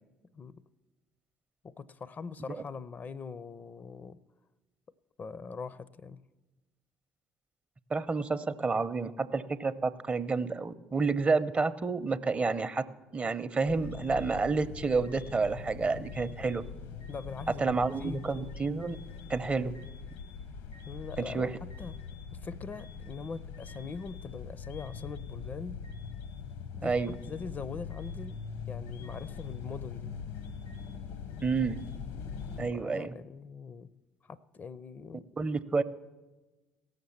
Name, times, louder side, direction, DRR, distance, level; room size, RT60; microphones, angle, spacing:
voice 1, 0.3-0.6 1.6-4.2 5.2-6.2 17.1-18.3 20.8-22.0 22.3-25.8 26.7-28.4 28.7-30.1 32.7-33.9 34.2-35.3, left 5 dB, 35° left, 17 dB, 0.5 m, -42 dB
voice 2, 7.9-12.9 13.1-16.6 17.6-19.0 19.3-19.7 21.2-21.5 26.8-27.1 31.4-31.8 32.6-33.1 35.4-35.8, right 4 dB, 30° right, 12 dB, 0.6 m, -29 dB
sound 1, 13.7-32.7, left 6 dB, 75° left, 0.9 m, -42 dB
17.0 x 6.6 x 7.1 m, 1.2 s
hypercardioid pair, 60°, 5 cm